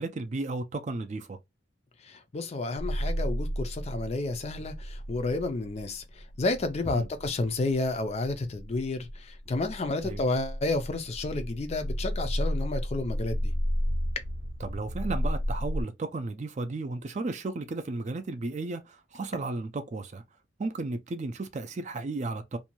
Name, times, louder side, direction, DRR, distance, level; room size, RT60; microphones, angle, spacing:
voice 1, 0.0-1.4 6.9-7.1 10.0-10.2 14.6-20.2 20.6-22.6, right 3 dB, 35° right, 0.4 m, -34 dB
voice 2, 2.0-13.5, left 2 dB, 30° left, 0.4 m, -31 dB
sound 1, 2.8-15.8, equal, 90° right, 0.6 m, -33 dB
2.6 x 2.2 x 2.9 m
head